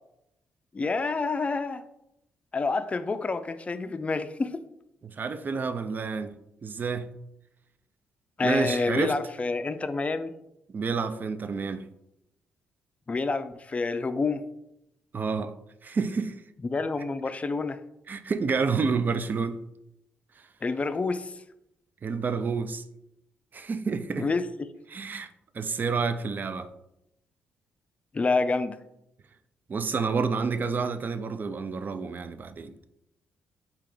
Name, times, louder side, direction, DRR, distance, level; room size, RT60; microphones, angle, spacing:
voice 1, 0.7-1.8 2.5-4.6 8.4-10.3 13.1-14.4 16.6-17.8 20.6-21.3 24.1-24.7 28.1-28.8, left 3 dB, 30° left, 0.4 m, -28 dB
voice 2, 5.0-6.3 6.6-7.1 8.4-9.1 10.7-11.8 15.1-15.5 15.8-16.3 18.1-19.6 22.0-22.8 23.5-24.3 24.9-25.3 25.5-26.7 29.7-32.7, right 5 dB, 40° right, 0.4 m, -29 dB
4.4 x 2.9 x 3.8 m
supercardioid pair, 55°, 5 cm